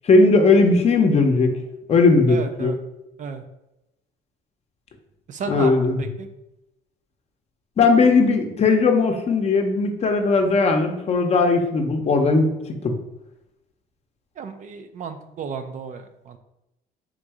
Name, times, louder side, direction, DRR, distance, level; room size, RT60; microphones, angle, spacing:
voice 1, 0.0-1.5 1.9-2.7 5.5-6.0 7.8-13.0, left 3 dB, 40° left, 4 dB, 0.7 m, -18 dB
voice 2, 2.3-2.8 3.2-3.4 5.3-6.3 14.4-16.4, right 6 dB, 50° right, 7 dB, 0.4 m, -33 dB
3.8 x 2.6 x 4.7 m, 0.91 s
cardioid pair, 110°, 17 cm